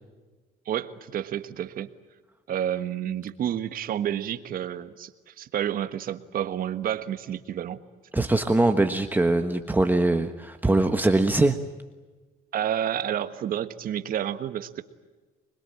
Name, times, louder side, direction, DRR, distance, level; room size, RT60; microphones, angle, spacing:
voice 1, 0.6-1.9 2.5-7.8 12.5-14.8, right 10 dB, 60° right, 10 dB, 1.5 m, -30 dB
voice 2, 8.1-11.6, right 2 dB, 10° right, 6 dB, 1.3 m, -22 dB
25.5 x 21.5 x 8.9 m, 1.3 s
cardioid pair, 110°, 17 cm